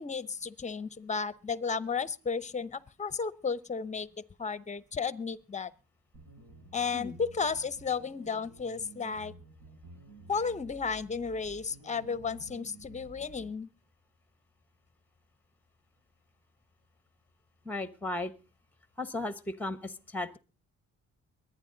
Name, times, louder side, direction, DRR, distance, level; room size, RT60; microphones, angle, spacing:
voice 1, 0.0-4.1 4.4-5.7 6.7-9.3 10.3-13.7, left 5 dB, 25° left, 0.8 m, -33 dB
sound 1, 6.1-13.5, right 2 dB, 65° right, 7.3 m, -52 dB
voice 2, 17.6-18.3 19.0-20.4, left 2 dB, 5° left, 1.1 m, -35 dB
22.5 x 9.6 x 3.9 m
cardioid pair, 90°, 30 cm